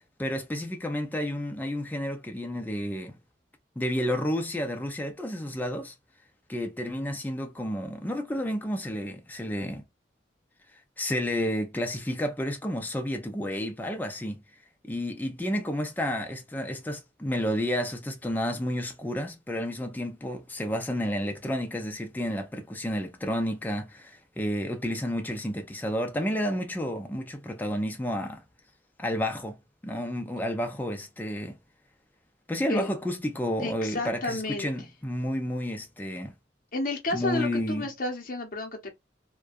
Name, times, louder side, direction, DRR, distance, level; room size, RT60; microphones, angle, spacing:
voice 1, 0.2-3.2 3.8-5.9 6.5-9.8 11.0-14.4 14.8-28.4 29.0-29.6 29.8-31.6 32.5-36.4 37.1-37.9, equal, 10° left, 0.4 m, -31 dB
voice 2, 33.6-34.7 36.7-38.9, left 2 dB, 50° left, 0.7 m, -31 dB
2.5 x 2.2 x 2.3 m
head